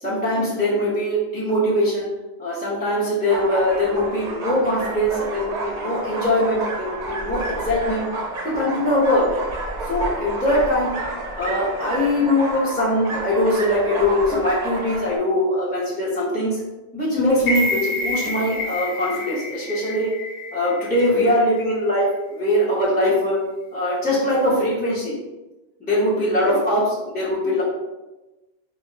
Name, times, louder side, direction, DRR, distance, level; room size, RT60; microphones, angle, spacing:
voice 1, 0.0-2.1 2.4-8.0 8.4-9.2 9.9-10.9 11.3-16.6 16.9-20.1 20.5-23.4 23.7-25.2 25.9-27.6, left 1 dB, 10° left, -8 dB, 0.8 m, -21 dB
sound 1, 3.3-15.2, right 2 dB, 50° right, 0.6 m, -30 dB
sound 2, 17.4-21.5 21.9-22.0, left 2 dB, 70° left, 1.2 m, -28 dB
4.0 x 2.2 x 3.2 m, 1.1 s
omnidirectional pair, 1.1 m